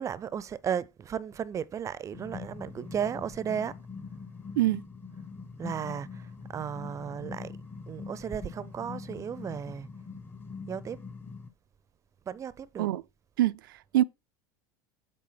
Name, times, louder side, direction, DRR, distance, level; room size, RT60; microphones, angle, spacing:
voice 1, 0.0-3.8 5.6-7.6 7.9-9.9 10.6-11.0 12.2-12.9, right 8 dB, 30° right, 0.5 m, -35 dB
sound 1, 2.1-11.5, left 5 dB, 20° left, 0.8 m, -43 dB
voice 2, 13.4-14.0, right 14 dB, 80° right, 0.4 m, -25 dB
7.6 x 3.8 x 5.6 m
hypercardioid pair, 95°, 11 cm